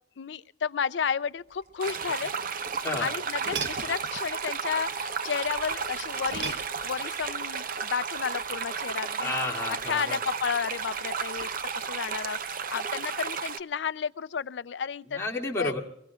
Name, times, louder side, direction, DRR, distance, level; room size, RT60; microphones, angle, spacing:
voice 1, 0.2-2.3 3.0-6.6 6.8-9.3 9.9-11.5 11.7-15.2 15.6-15.7, left 6 dB, 80° left, 18 dB, 0.5 m, -32 dB
sound 1, 1.5-13.5, right 1 dB, 65° right, 4.6 m, -53 dB
sound 2, 1.7-4.1 6.3-7.2 9.3-9.6, right 5 dB, 85° right, 1.0 m, -39 dB
sound 3, 1.8-13.6, right 6 dB, 50° right, 0.7 m, -33 dB
voice 2, 9.2-10.2 15.1-15.8, left 3 dB, 15° left, -3 dB, 2.7 m, -31 dB
24.0 x 21.0 x 2.4 m, 0.76 s
head